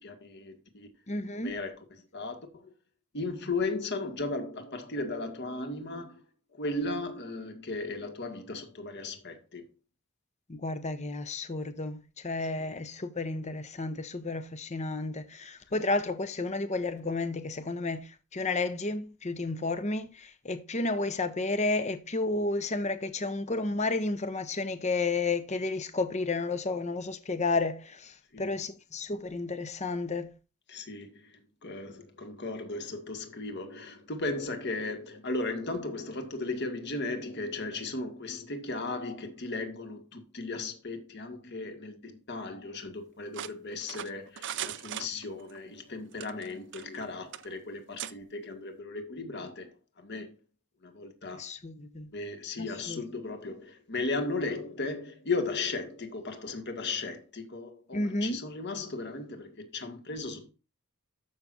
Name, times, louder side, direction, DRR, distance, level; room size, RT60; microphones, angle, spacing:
voice 1, 0.0-0.9 1.3-1.8 2.1-2.7 3.1-6.2 6.5-9.7 15.7-15.8 28.3-28.5 30.7-49.7 50.0-50.3 50.8-51.4 52.1-60.5, left 3 dB, 50° left, 1.8 m, -36 dB
voice 2, 1.1-1.6 10.5-30.3 51.4-52.1 52.6-53.0 57.9-58.4, left 3 dB, 30° left, 0.8 m, -32 dB
sound 1, 43.3-45.6 46.1-47.0 47.3-47.5 48.0-48.1, right 10 dB, 55° right, 0.6 m, -39 dB
14.0 x 6.1 x 2.6 m
head